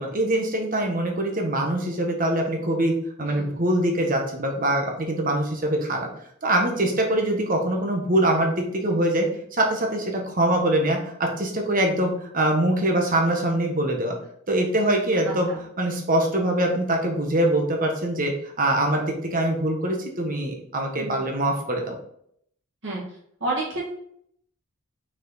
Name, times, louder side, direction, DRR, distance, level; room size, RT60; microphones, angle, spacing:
voice 1, 0.0-2.9 3.2-6.1 6.4-9.3 9.5-14.1 14.5-15.5 15.8-21.9, right 1 dB, 40° right, 1 dB, 1.4 m, -23 dB
voice 2, 23.4-23.9, right 2 dB, 60° right, -6 dB, 2.2 m, -30 dB
6.1 x 4.9 x 4.1 m, 0.69 s
head